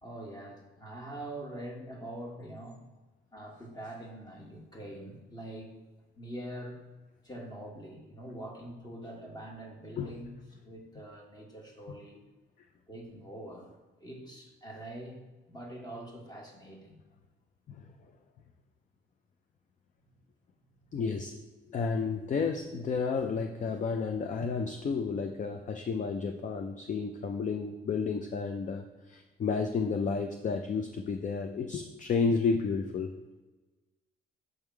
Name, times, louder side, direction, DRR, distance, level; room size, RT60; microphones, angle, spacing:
voice 1, 0.0-2.8 3.3-5.8 6.1-6.8 7.2-12.2 12.9-13.7 14.0-15.2 15.5-17.0, right 1 dB, 20° left, 0 dB, 1.5 m, -44 dB
voice 2, 20.9-21.4 21.7-33.1, left 5 dB, 40° left, 5 dB, 0.5 m, -31 dB
6.5 x 3.5 x 4.6 m, 1.2 s
cardioid pair, 90°, 20 cm